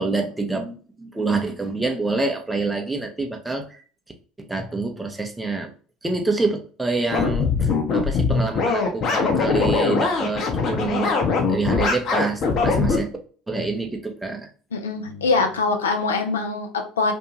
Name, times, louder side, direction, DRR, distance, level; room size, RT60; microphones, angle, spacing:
voice 1, 0.0-3.7 4.4-5.7 6.0-13.1 13.5-14.5, right 3 dB, 15° right, 3 dB, 0.6 m, -27 dB
sound 1, 7.1-13.0, left 4 dB, 50° left, 0.7 m, -21 dB
voice 2, 14.7-17.1, left 4 dB, 80° left, 4 dB, 0.4 m, -23 dB
2.6 x 2.2 x 2.8 m, 0.40 s
figure-of-eight pair, 65°, 0 cm